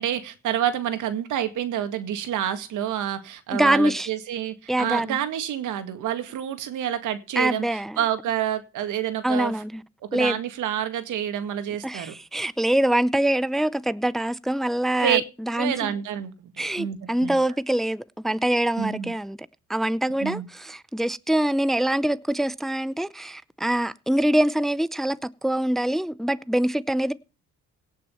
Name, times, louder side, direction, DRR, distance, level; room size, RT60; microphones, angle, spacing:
voice 1, 0.0-7.6 8.0-9.5 10.1-12.1 15.0-15.2 15.5-17.4 18.8-19.1 20.2-20.5, right 10 dB, 80° right, 2.0 m, -28 dB
voice 2, 3.5-4.1 4.7-5.2 7.4-8.0 9.2-9.8 10.1-10.4 11.8-15.9 16.6-19.4 19.7-27.1, right 1 dB, ahead, 0.6 m, -24 dB
17.5 x 6.2 x 5.7 m
cardioid pair, 90°, 30 cm